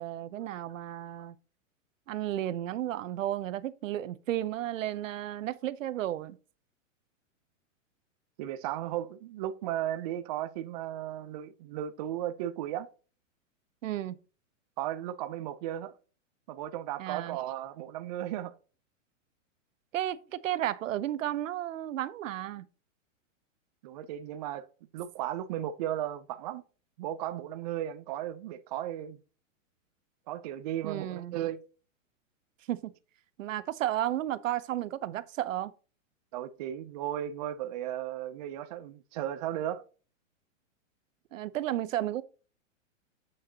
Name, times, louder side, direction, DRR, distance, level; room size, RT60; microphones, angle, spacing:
voice 1, 0.0-1.4 2.1-6.4 13.8-14.2 17.0-17.4 19.9-22.7 30.8-31.4 32.7-32.9 33.4-35.7 41.3-42.2, right 12 dB, 75° right, 0.8 m, -33 dB
voice 2, 8.4-12.9 14.8-15.9 16.5-18.5 23.8-24.7 24.9-26.6 27.0-29.2 30.3-31.6 36.3-39.8, right 12 dB, 30° right, 0.5 m, -35 dB
8.4 x 6.4 x 2.8 m
hypercardioid pair, 155°, 39 cm